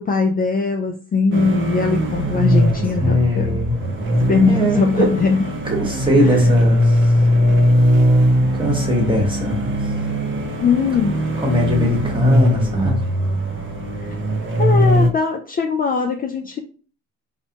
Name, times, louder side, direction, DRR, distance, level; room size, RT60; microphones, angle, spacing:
voice 1, 0.0-3.6 4.3-5.4 6.2-6.4 10.6-11.2 14.0-14.2 14.6-16.6, left 4 dB, 30° left, 3 dB, 0.4 m, -20 dB
sound 1, 1.3-15.1, equal, 40° right, 0.6 m, -19 dB
voice 2, 3.0-3.8 4.5-5.1 5.6-7.1 8.5-9.9 11.4-13.0, left 1 dB, 15° right, 0 dB, 1.1 m, -20 dB
3.2 x 2.1 x 2.8 m, 0.39 s
cardioid pair, 90°, 30 cm